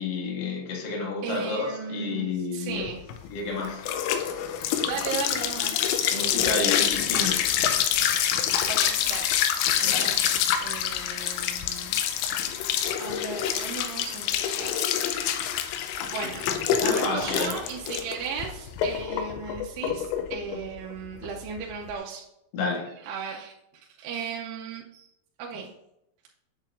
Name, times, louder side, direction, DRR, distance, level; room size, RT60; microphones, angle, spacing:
voice 1, 0.0-2.9 3.3-3.8 6.1-7.4 9.8-10.1 16.8-17.6 22.5-22.9, left 4 dB, 70° left, -1 dB, 1.5 m, -30 dB
voice 2, 1.2-3.0 4.8-5.8 6.1-6.8 7.1-7.4 8.7-9.3 9.8-12.0 12.4-12.7 13.0-14.9 16.1-16.5 16.8-22.3 23.0-25.1 25.4-25.7, right 6 dB, 85° right, -2 dB, 2.7 m, -36 dB
sound 1, 2.8-21.9, left 9 dB, 90° left, 2.9 m, -26 dB
8.4 x 7.3 x 2.5 m, 0.83 s
omnidirectional pair, 5.0 m